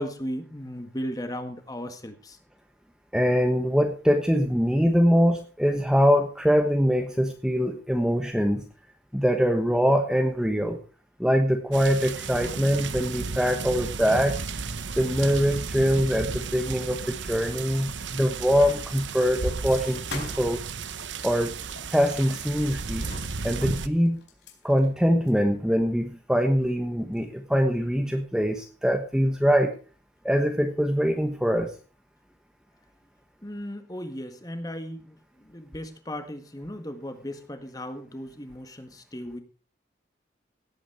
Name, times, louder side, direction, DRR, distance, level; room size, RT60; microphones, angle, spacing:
voice 1, 0.0-2.4 33.4-39.4, equal, 20° left, 8 dB, 1.7 m, -36 dB
voice 2, 3.1-8.6 9.1-10.8 11.2-14.4 15.0-20.6 21.2-21.5 21.9-23.0 23.4-24.2 24.6-29.7 30.2-31.7, equal, 5° right, 4 dB, 1.1 m, -23 dB
sound 1, 11.7-23.9, right 4 dB, 85° right, 0.9 m, -34 dB
sound 2, 18.8-20.6 21.0-21.1 21.8-22.6 22.9-25.4 26.0-26.1 26.3-26.4 27.1-27.4 27.8-28.5 28.8-29.5, left 3 dB, 70° left, 4.1 m, -45 dB
17.0 x 8.6 x 4.8 m, 0.38 s
head